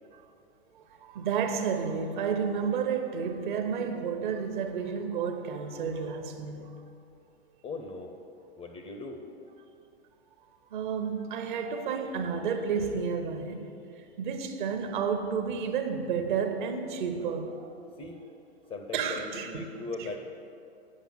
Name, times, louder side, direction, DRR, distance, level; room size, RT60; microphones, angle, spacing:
voice 1, 0.7-6.9 10.7-17.7 18.9-19.7, right 6 dB, 50° right, 1.0 m, -31 dB
voice 2, 7.6-8.2 8.6-9.3 18.0-18.2 18.7-20.2, left 3 dB, 15° left, 0.5 m, -39 dB
8.6 x 5.7 x 7.2 m
figure-of-eight pair, 105°, 32 cm